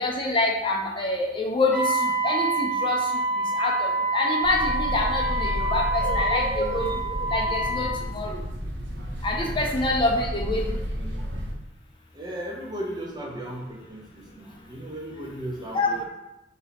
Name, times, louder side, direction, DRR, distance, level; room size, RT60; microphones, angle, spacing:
voice 1, 0.0-2.0 2.2-3.0 3.6-7.9 8.1-8.4 9.2-10.8 15.7-16.0, left 2 dB, 25° left, 0 dB, 0.5 m, -26 dB
Wind instrument woodwind instrument, 1.7-8.0, right 2 dB, ahead, 1.3 m, -27 dB
sound 1, 4.4-11.5, equal, 65° right, 0.9 m, -31 dB
voice 2, 9.4-9.9 12.1-16.0, right 1 dB, 20° right, -2 dB, 0.8 m, -36 dB
4.4 x 2.8 x 4.1 m, 0.92 s
head